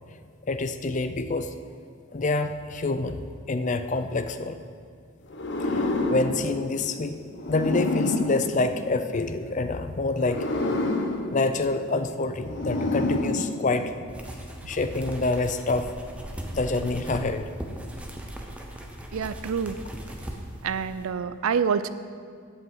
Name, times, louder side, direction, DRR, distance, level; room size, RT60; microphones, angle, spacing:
voice 1, 0.5-1.6 2.1-4.6 5.6-7.2 7.5-10.4 11.3-14.1 14.7-15.9 16.5-17.5, left 3 dB, 35° left, 10 dB, 0.4 m, -27 dB
sound 1, 5.3-9.4 10.1-14.1, left 2 dB, 50° left, 0.9 m, -29 dB
sound 2, 14.1-21.0, equal, 5° right, 0.7 m, -38 dB
voice 2, 19.1-19.8 20.6-21.9, right 6 dB, 75° right, 13 dB, 0.4 m, -27 dB
8.4 x 7.8 x 7.3 m, 2.2 s
head